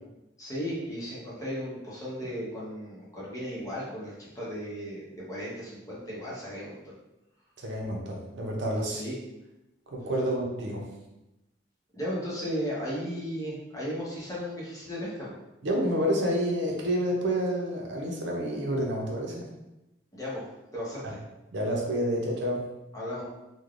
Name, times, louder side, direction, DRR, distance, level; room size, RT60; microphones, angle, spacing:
voice 1, 0.4-6.9 8.9-9.2 11.9-15.3 20.1-20.4 20.7-21.2 22.9-23.2, equal, 20° left, -7 dB, 0.8 m, -35 dB
voice 2, 7.6-9.0 9.9-10.9 15.6-19.5 21.0-21.1 21.5-22.7, equal, 70° right, -1 dB, 0.6 m, -29 dB
3.2 x 2.2 x 2.4 m, 0.95 s
head